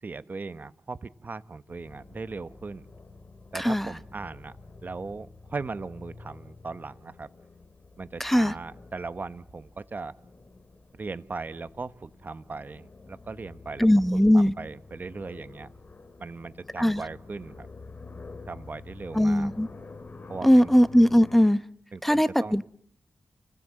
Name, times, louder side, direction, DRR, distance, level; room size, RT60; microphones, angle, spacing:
voice 1, 0.0-2.8 3.5-4.5 4.8-7.3 8.0-10.1 10.9-13.9 14.1-15.7 16.2-17.7 18.5-19.5 20.3-20.7 21.9-22.6, right 4 dB, 45° right, 14 dB, 1.1 m, -38 dB
sound 1, 1.7-21.5, left 3 dB, 45° left, 3.1 m, -48 dB
voice 2, 3.5-3.9 8.2-8.5 13.8-14.5 16.8-17.0 19.1-19.7 20.4-21.6 22.0-22.6, equal, 5° left, 14 dB, 1.0 m, -20 dB
29.5 x 18.5 x 7.7 m, 0.63 s
cardioid pair, 65°, 4 cm